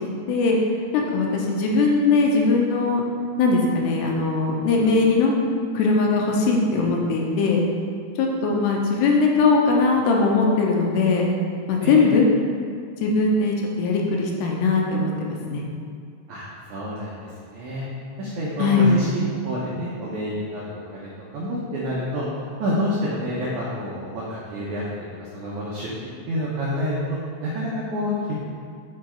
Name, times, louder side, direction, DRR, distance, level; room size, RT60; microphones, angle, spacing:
voice 1, 0.9-3.0 3.4-5.3 5.7-7.6 8.2-11.3 11.7-12.3 13.0-15.6 18.6-18.9, left 4 dB, 85° left, -1 dB, 2.9 m, -20 dB
voice 2, 16.3-17.8 18.2-22.3 22.6-25.1 25.3-25.9 26.3-28.3, equal, 85° right, -6 dB, 1.7 m, -28 dB
8.7 x 4.6 x 4.5 m, 2.2 s
omnidirectional pair, 4.9 m